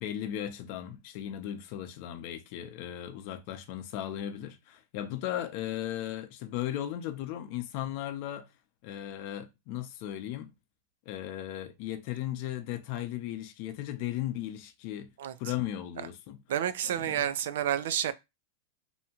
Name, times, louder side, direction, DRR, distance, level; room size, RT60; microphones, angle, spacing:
voice 1, 0.0-8.5 8.8-10.5 11.1-15.1 15.4-16.4 16.8-17.3, left 12 dB, 45° left, 0.5 m, -36 dB
voice 2, 16.5-18.1, right 10 dB, 75° right, 0.4 m, -29 dB
2.7 x 2.2 x 2.9 m
supercardioid pair, 155°, 0 cm